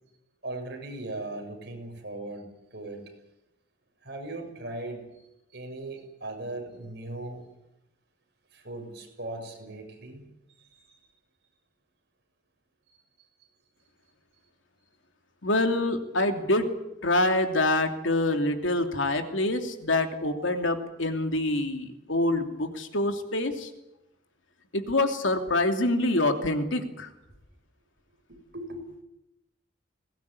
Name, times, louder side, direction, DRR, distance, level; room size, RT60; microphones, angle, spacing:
voice 1, 0.4-3.1 4.0-7.5 8.5-10.3 10.5-11.0 12.9-13.0 28.3-28.8, right 2 dB, 55° right, 3 dB, 6.9 m, -39 dB
voice 2, 15.4-16.7 17.0-23.7 24.7-27.1, left 2 dB, 80° left, 5 dB, 2.8 m, -26 dB
21.0 x 19.0 x 9.7 m, 0.89 s
head